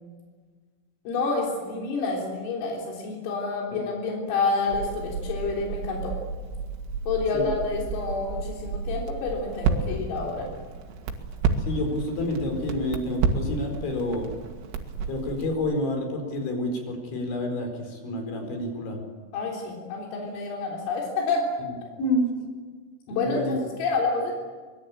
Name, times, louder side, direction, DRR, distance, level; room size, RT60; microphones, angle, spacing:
voice 1, 1.1-6.1 7.1-10.5 19.3-21.5 23.1-24.3, left 4 dB, 90° left, -1 dB, 6.2 m, -28 dB
Crackle, 4.7-15.5, right 5 dB, 85° right, 4.5 m, -31 dB
voice 2, 11.6-14.3 15.1-19.0 22.0-22.5 23.1-23.5, left 1 dB, 65° left, 4 dB, 6.8 m, -29 dB
24.0 x 22.0 x 8.7 m, 1.5 s
omnidirectional pair, 5.8 m